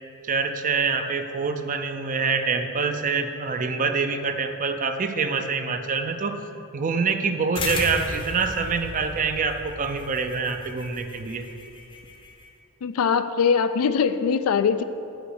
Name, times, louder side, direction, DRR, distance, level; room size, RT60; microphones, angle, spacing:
voice 1, 0.2-6.4 6.7-11.5, right 4 dB, 40° right, 0.5 m, -25 dB
sound 1, 7.5-12.5, left 3 dB, 25° left, 0.7 m, -35 dB
voice 2, 12.8-14.8, left 6 dB, 80° left, 0.4 m, -22 dB
8.2 x 5.1 x 6.5 m
head